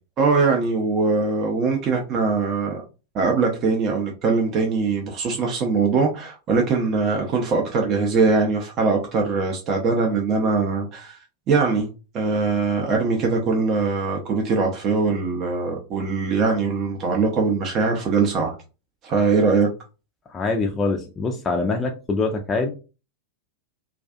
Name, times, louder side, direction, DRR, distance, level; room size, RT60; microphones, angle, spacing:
voice 1, 0.2-2.8 3.1-11.2 11.5-11.9 12.1-18.6 19.0-19.7, right 4 dB, 35° right, 0 dB, 0.5 m, -22 dB
voice 2, 20.3-22.7, left 3 dB, 20° left, 2 dB, 0.4 m, -24 dB
2.4 x 2.3 x 2.3 m, 0.31 s
figure-of-eight pair, 90°, 0 cm